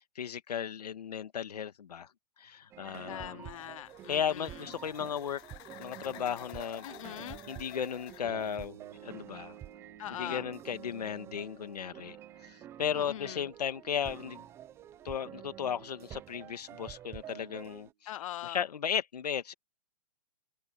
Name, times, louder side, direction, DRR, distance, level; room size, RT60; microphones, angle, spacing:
voice 1, 0.2-2.1 2.4-3.5 4.1-5.4 5.8-6.9 7.5-9.6 10.2-12.2 12.4-14.4 15.0-18.1 18.4-19.5, left 8 dB, 90° left, 1.9 m, -35 dB
sound 1, 2.7-17.9, right 11 dB, 15° right, 0.6 m, -49 dB
voice 2, 3.1-4.6 6.8-7.4 10.0-10.5 13.0-13.5 18.1-18.6, left 12 dB, 60° left, 0.6 m, -42 dB
sound 2, 3.4-8.7, left 20 dB, 20° left, 0.8 m, -52 dB
sound 3, 8.3-17.9, right 9 dB, 70° right, 4.8 m, -57 dB
open air
hypercardioid pair, 160°, 20 cm